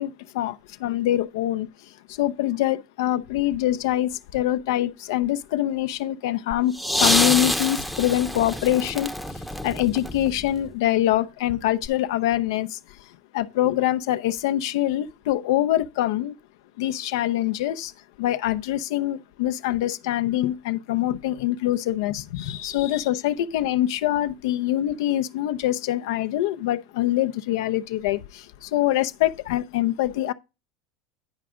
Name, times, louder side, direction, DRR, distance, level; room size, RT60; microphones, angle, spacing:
voice 1, 0.0-1.7 2.1-6.7 7.0-9.1 9.6-12.8 13.3-16.3 16.8-17.9 18.2-30.3, left 13 dB, 70° left, 0.5 m, -24 dB
sound 1, 6.5-10.7 11.8-11.9, left 1 dB, ahead, 0.7 m, -26 dB
9.6 x 5.0 x 3.6 m
hypercardioid pair, 90°, 2 cm